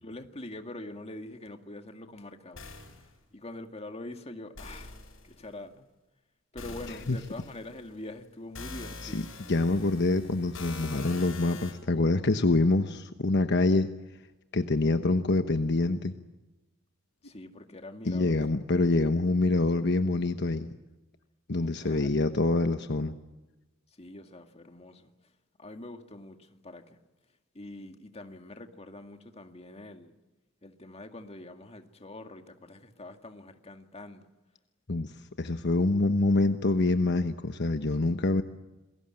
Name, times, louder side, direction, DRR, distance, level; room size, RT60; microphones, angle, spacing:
voice 1, 0.0-2.7 3.0-5.9 6.5-9.3 17.2-18.4 21.6-22.2 24.0-25.1 25.6-27.0 27.5-30.2 30.6-34.3, left 2 dB, 30° left, 2.1 m, -44 dB
sound 1, 2.6-3.1 4.6-5.3 6.6-7.9 8.5-11.7, left 3 dB, 80° left, 7.6 m, -44 dB
voice 2, 9.5-13.9 14.5-16.1 18.0-20.7 21.5-23.1 34.9-35.1 35.4-38.4, left 2 dB, 60° left, 1.1 m, -26 dB
28.5 x 21.0 x 9.0 m
head